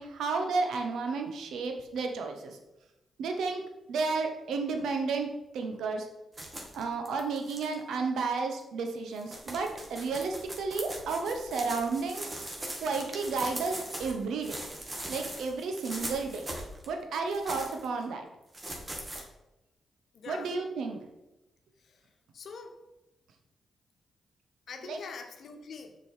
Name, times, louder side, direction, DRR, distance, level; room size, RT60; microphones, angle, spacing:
voice 1, 0.0-2.6 3.2-3.6 3.9-5.3 5.5-6.1 6.7-12.5 12.8-14.6 15.1-16.5 16.9-18.3 20.3-21.0 24.9-25.0, right 4 dB, 80° right, 4 dB, 1.0 m, -32 dB
sound 1, 6.3-7.7 8.6-8.7 9.1-14.1 14.4-16.9 17.3-17.9 18.5-19.2, right 1 dB, 30° right, 2.0 m, -40 dB
voice 2, 20.1-20.5 21.8-22.0 22.3-22.8 24.7-26.0, left 5 dB, 70° left, 5 dB, 1.0 m, -44 dB
6.6 x 5.2 x 4.6 m, 0.97 s
supercardioid pair, 50°, 0 cm